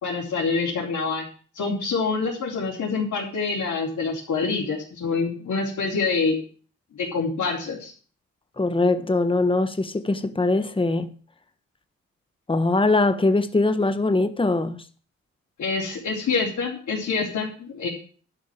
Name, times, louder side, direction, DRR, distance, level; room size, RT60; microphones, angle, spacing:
voice 1, 0.0-1.3 1.5-6.4 6.9-7.9 15.6-17.9, left 4 dB, 70° left, 4.1 m, -26 dB
voice 2, 8.6-11.1 12.5-14.8, left 2 dB, 15° left, 1.3 m, -22 dB
12.0 x 5.4 x 8.9 m
supercardioid pair, 50°, 30 cm